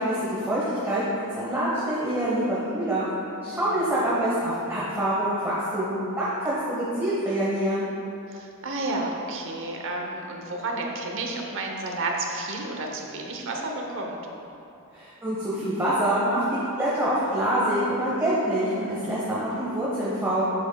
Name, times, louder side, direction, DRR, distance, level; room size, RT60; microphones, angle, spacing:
voice 1, 0.0-3.1 3.4-7.9 14.9-20.4, right 1 dB, 10° right, -9 dB, 1.1 m, -26 dB
voice 2, 3.5-4.0 8.3-14.2, right 2 dB, 60° right, 1 dB, 0.9 m, -31 dB
8.7 x 7.7 x 2.3 m, 2.8 s
head